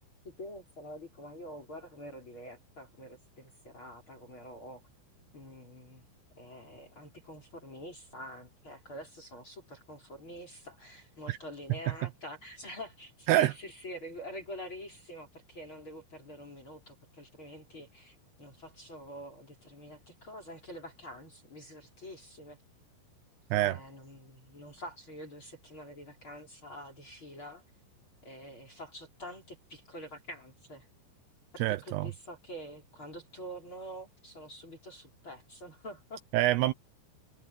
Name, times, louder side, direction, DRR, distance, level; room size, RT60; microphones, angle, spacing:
voice 1, 0.2-4.8 5.3-6.1 6.4-22.6 23.5-27.6 28.2-30.9 31.5-36.2, equal, 25° left, 4.9 m, -46 dB
voice 2, 31.6-32.1 36.3-36.7, right 15 dB, 85° right, 2.4 m, -26 dB
omnidirectional pair, 5.8 m